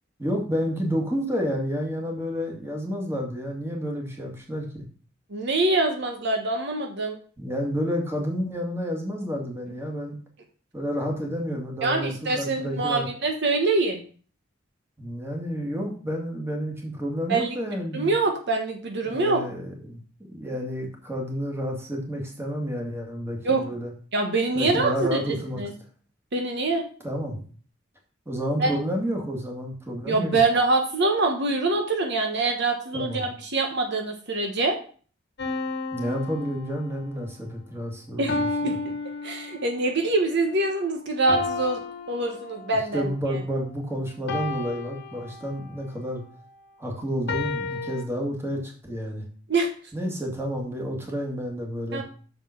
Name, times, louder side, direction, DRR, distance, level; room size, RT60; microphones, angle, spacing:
voice 1, 0.2-4.7 7.4-10.1 10.7-13.1 15.0-18.1 19.0-20.0 20.3-23.9 24.5-25.6 27.0-27.4 28.3-30.4 32.9-33.2 35.9-38.8 42.7-46.2 46.8-49.3 49.9-52.0, equal, 15° right, 0 dB, 2.0 m, -30 dB
voice 2, 5.3-7.2 11.8-14.0 17.3-17.5 17.9-19.4 23.4-23.6 24.1-25.2 25.6-25.7 26.3-26.8 28.6-28.8 30.1-34.8 38.2-38.9 39.2-41.8 42.1-43.1 49.5-49.7 51.9-52.0, right 3 dB, 60° right, 3 dB, 1.2 m, -24 dB
sound 1, 35.4-37.2 38.3-39.9 41.3-42.9 44.3-45.8 47.3-48.0, left 3 dB, 60° left, 1.3 m, -32 dB
6.6 x 5.3 x 5.8 m, 0.42 s
head